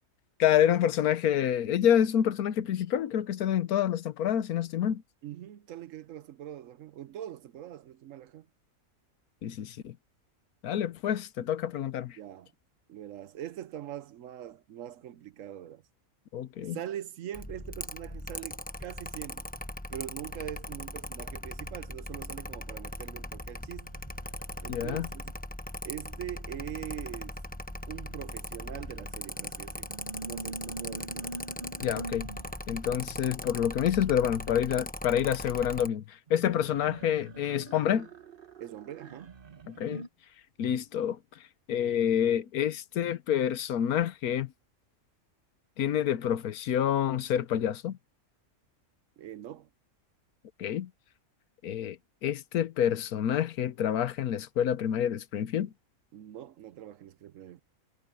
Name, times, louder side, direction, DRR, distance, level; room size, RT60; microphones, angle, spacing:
voice 1, 0.4-5.0 9.4-9.9 10.6-12.2 16.3-16.8 24.7-25.1 31.8-32.3 32.7-38.1 39.7-40.0 40.6-41.2 41.7-44.5 45.8-48.0 50.6-50.9 51.6-52.0 52.2-55.7, left 9 dB, 80° left, 1.3 m, -28 dB
voice 2, 5.2-8.5 12.2-12.5 12.9-15.8 16.6-19.5 19.9-23.9 24.6-25.2 25.8-27.4 27.9-29.9 30.2-31.3 38.6-39.3 49.2-49.7 56.1-57.6, right 11 dB, 65° right, 1.0 m, -42 dB
Mechanical fan, 17.3-35.9, left 1 dB, 5° left, 0.8 m, -40 dB
sound 1, 23.4-25.3 26.4-33.2 36.3-40.1, right 3 dB, 40° right, 1.4 m, -46 dB
omnidirectional pair, 1.5 m